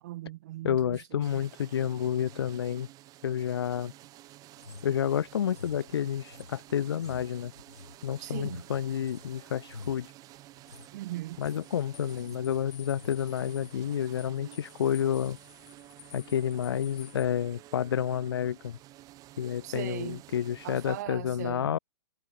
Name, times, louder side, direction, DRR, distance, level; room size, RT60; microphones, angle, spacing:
voice 1, 0.0-1.3 8.2-8.7 10.9-11.4 14.4-14.6 19.6-20.2 20.6-21.8, right 16 dB, 40° right, 0.4 m, -39 dB
voice 2, 0.6-2.9 3.2-3.9 4.8-7.5 8.0-10.1 11.4-15.4 16.1-18.8 19.4-21.8, left 9 dB, 65° left, 0.6 m, -30 dB
sound 1, 1.2-21.0, right 16 dB, 25° right, 1.8 m, -52 dB
sound 2, 4.6-9.3 9.6-10.1 10.6-10.9 11.2-11.7 12.0-12.5 12.8-13.2 13.7-13.9, left 3 dB, 85° left, 2.3 m, -48 dB
sound 3, 10.3-17.3, left 24 dB, 40° left, 6.8 m, -54 dB
figure-of-eight pair, 120°, 14 cm